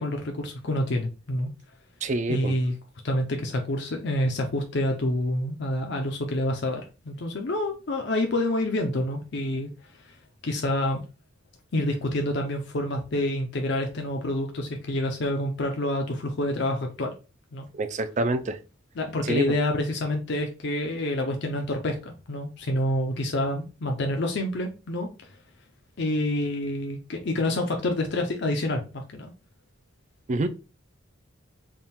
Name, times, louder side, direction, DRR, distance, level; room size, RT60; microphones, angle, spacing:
voice 1, 0.0-1.5 2.3-2.7 3.0-9.7 10.0-10.1 10.4-11.0 11.7-17.1 17.5-17.7 19.0-25.1 26.0-29.3, left 1 dB, 55° left, 0.6 m, -27 dB
voice 2, 2.0-2.6 17.7-18.6 19.2-19.6 30.3-30.5, right 2 dB, 35° right, 0.4 m, -26 dB
3.6 x 2.3 x 4.1 m
head